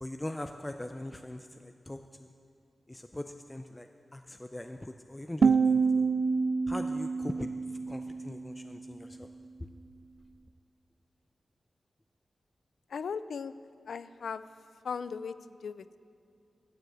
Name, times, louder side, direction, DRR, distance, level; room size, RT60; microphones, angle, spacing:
voice 1, 0.0-2.3 2.9-6.0 6.7-7.5 7.9-9.3, left 1 dB, 15° left, 6 dB, 0.4 m, -41 dB
sound 1, 5.4-8.4, right 5 dB, 60° right, 0.3 m, -27 dB
voice 2, 12.9-13.5 13.9-14.4 14.8-15.3 15.6-16.0, left 6 dB, 90° left, 14 dB, 0.4 m, -37 dB
14.0 x 7.6 x 7.9 m, 2.3 s
wide cardioid pair, 115°, 0 cm